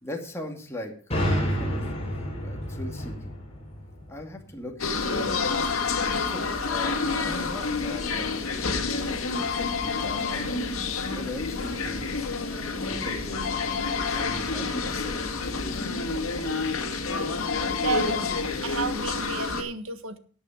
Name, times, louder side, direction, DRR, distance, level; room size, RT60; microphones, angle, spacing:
voice 1, 0.0-1.9 2.4-3.3 4.1-5.4 6.2-10.5 11.0-12.1 12.3-13.5 14.1-15.9, left 1 dB, 15° left, 1 dB, 2.4 m, -40 dB
sound 1, 1.1-4.8, equal, 30° left, 4.4 m, -30 dB
sound 2, 4.8-19.6, left 4 dB, 75° left, 2.2 m, -28 dB
voice 2, 17.7-18.2 18.6-20.2, right 5 dB, 75° right, 11 dB, 1.5 m, -31 dB
13.5 x 8.8 x 5.0 m, 0.42 s
head